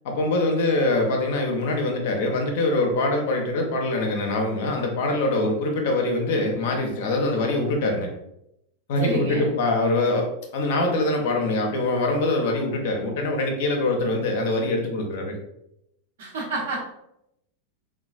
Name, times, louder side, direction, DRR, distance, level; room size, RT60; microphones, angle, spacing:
voice 1, 0.0-8.1 8.9-10.3 10.5-15.3, left 2 dB, 50° left, 2 dB, 0.6 m, -24 dB
voice 2, 9.0-9.5 16.2-16.8, right 2 dB, 60° right, -3 dB, 1.0 m, -29 dB
3.8 x 2.2 x 2.4 m, 0.81 s
figure-of-eight pair, 90°, 0 cm